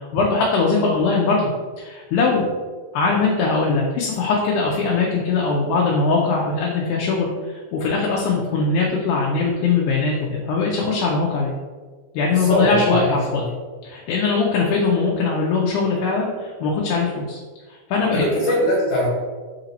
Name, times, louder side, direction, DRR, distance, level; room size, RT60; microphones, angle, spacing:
voice 1, 0.0-2.5 2.9-11.5 12.1-13.4 13.8-17.4 17.9-18.6, left 4 dB, 85° left, -2 dB, 2.1 m, -21 dB
voice 2, 12.3-13.4 18.1-19.1, equal, 60° left, -5 dB, 2.4 m, -21 dB
5.0 x 2.6 x 4.0 m, 1.5 s
omnidirectional pair, 3.5 m